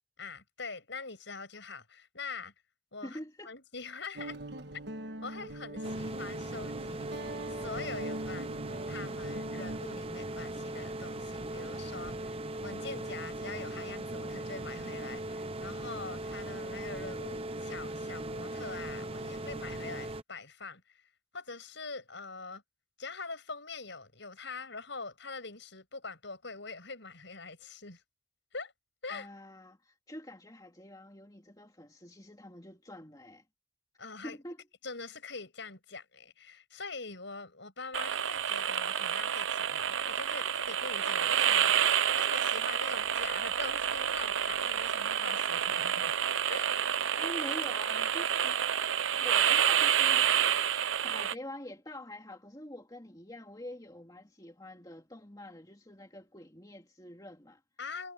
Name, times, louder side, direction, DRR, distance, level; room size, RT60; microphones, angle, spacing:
voice 1, 0.2-2.5 2.9-3.2 3.4-4.4 5.2-7.1 7.5-8.6 8.9-21.0 21.3-22.6 23.0-28.0 28.5-28.7 29.0-29.3 34.0-34.4 34.8-46.2 46.4-46.7 57.8-58.1, left 4 dB, 60° left, 7.4 m, -44 dB
voice 2, 3.0-3.5 29.1-33.4 34.2-34.7 47.2-48.6 49.2-50.3 51.0-57.6, left 1 dB, 20° left, 2.5 m, -46 dB
Guitar, 4.2-9.8, right 1 dB, 55° right, 1.5 m, -42 dB
sound 1, 5.8-20.2, right 1 dB, 30° right, 0.8 m, -39 dB
sound 2, 37.9-51.3, right 9 dB, 70° right, 0.7 m, -29 dB
head